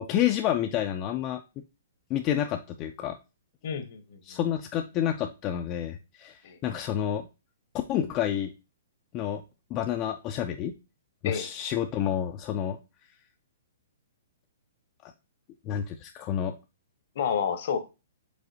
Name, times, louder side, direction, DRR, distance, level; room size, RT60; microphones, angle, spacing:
voice 1, 0.0-1.4 2.1-3.2 4.3-7.3 7.9-8.5 9.1-9.4 9.7-10.7 11.2-12.8 15.7-16.5, left 10 dB, 25° left, 0.3 m, -29 dB
voice 2, 3.6-4.4 6.4-6.6 11.2-11.5 17.2-17.8, left 7 dB, 55° left, 0.8 m, -30 dB
5.0 x 3.5 x 2.7 m
hypercardioid pair, 150°, 0 cm